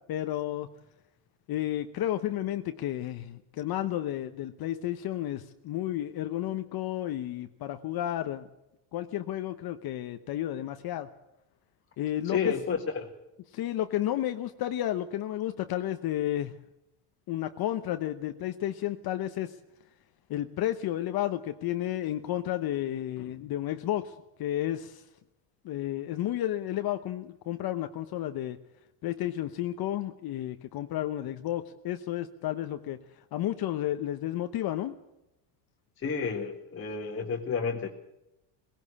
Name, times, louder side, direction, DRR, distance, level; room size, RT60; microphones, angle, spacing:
voice 1, 0.1-0.7 1.5-8.5 8.9-11.1 12.0-12.5 13.5-16.5 17.3-19.6 20.3-24.1 24.4-25.0 25.6-28.6 29.0-33.0 33.3-35.0, left 12 dB, 45° left, 8 dB, 1.0 m, -32 dB
voice 2, 12.2-13.1 36.0-37.9, left 6 dB, 25° left, 0 dB, 1.9 m, -31 dB
18.5 x 17.5 x 8.5 m, 0.90 s
cardioid pair, 120°, 50 cm